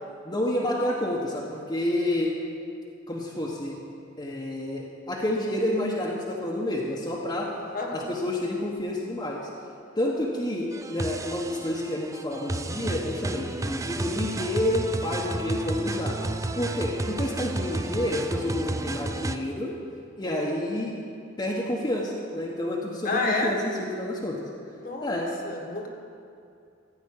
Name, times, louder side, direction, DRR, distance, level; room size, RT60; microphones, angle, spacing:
voice 1, 0.2-2.3 3.1-3.8 4.2-7.5 7.9-9.4 10.0-16.2 16.6-19.7 20.2-20.9 21.4-24.4 25.0-25.2, left 1 dB, 20° left, -4 dB, 1.1 m, -29 dB
voice 2, 7.7-8.1 20.2-20.4 23.0-23.5 24.8-25.9, left 3 dB, 45° left, 1 dB, 1.5 m, -30 dB
sound 1, 10.7-19.4, right 2 dB, 15° right, 0.4 m, -32 dB
14.5 x 5.4 x 8.7 m, 2.5 s
head